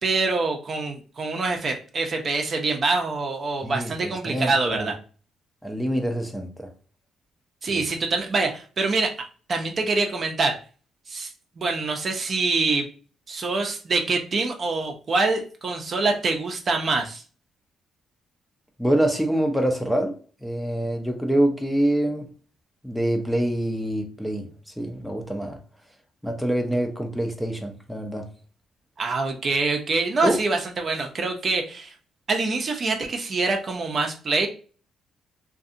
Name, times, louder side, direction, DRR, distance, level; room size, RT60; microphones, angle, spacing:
voice 1, 0.0-5.0 7.6-9.1 9.5-10.6 11.1-11.3 11.6-12.9 13.3-17.2 29.0-31.9 32.3-34.5, right 3 dB, 45° right, 0.6 m, -25 dB
voice 2, 3.6-4.9 5.6-6.7 7.7-7.8 18.8-22.3 22.8-24.5 24.8-25.6 26.2-28.3 30.2-30.4, right 1 dB, 5° left, 0.6 m, -25 dB
2.6 x 2.6 x 2.5 m
cardioid pair, 90°, 0 cm